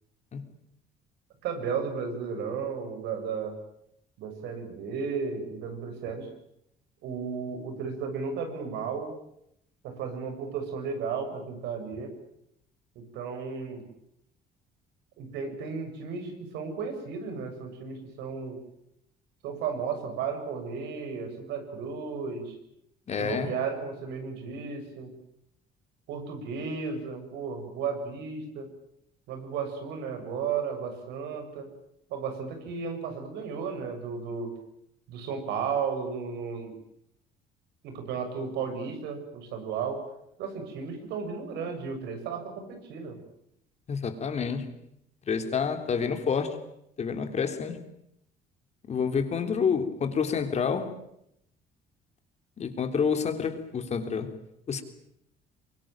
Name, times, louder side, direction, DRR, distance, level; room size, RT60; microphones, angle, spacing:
voice 1, 1.4-3.6 4.2-6.3 7.0-9.1 9.8-12.1 13.0-13.8 15.2-18.6 19.4-22.6 23.2-25.1 26.1-28.7 29.3-31.7 32.1-34.5 35.1-36.7 37.8-40.0 40.4-43.2, right 5 dB, 85° right, 7.1 m, -34 dB
voice 2, 23.1-23.5 43.9-44.7 45.3-46.6 47.0-47.8 48.9-50.9 52.6-54.3 54.7-54.8, left 6 dB, 40° left, 3.6 m, -28 dB
24.5 x 23.0 x 9.0 m
cardioid pair, 110°, 17 cm